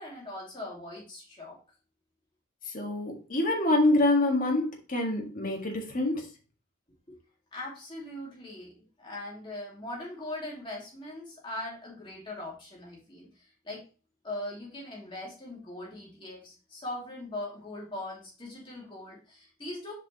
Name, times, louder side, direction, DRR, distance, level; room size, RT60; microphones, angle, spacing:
voice 1, 0.0-1.6 7.1-7.2 7.5-13.9 14.2-19.9, left 1 dB, 20° left, -4 dB, 2.8 m, -40 dB
voice 2, 2.7-6.3, left 2 dB, 40° left, 0 dB, 1.8 m, -26 dB
7.4 x 5.1 x 3.0 m, 0.35 s
head